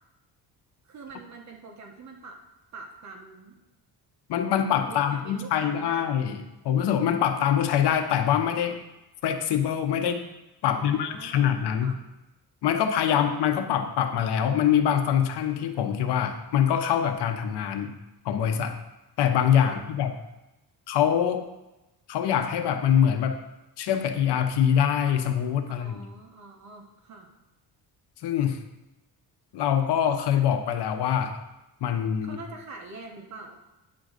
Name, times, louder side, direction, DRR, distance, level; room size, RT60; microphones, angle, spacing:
voice 1, 0.8-2.4 2.7-3.6 4.9-6.3 10.7-12.0 19.6-19.8 25.7-27.3 32.2-33.6, right 3 dB, 45° right, 1 dB, 1.3 m, -45 dB
voice 2, 4.3-8.8 9.2-10.2 10.6-11.9 12.6-17.9 18.2-18.8 19.2-20.1 20.9-21.4 22.1-23.4 23.8-26.1 28.2-28.6 29.5-31.4 31.8-32.4, left 9 dB, 80° left, 7 dB, 0.9 m, -24 dB
9.4 x 3.9 x 6.5 m, 0.99 s
cardioid pair, 165°, 40 cm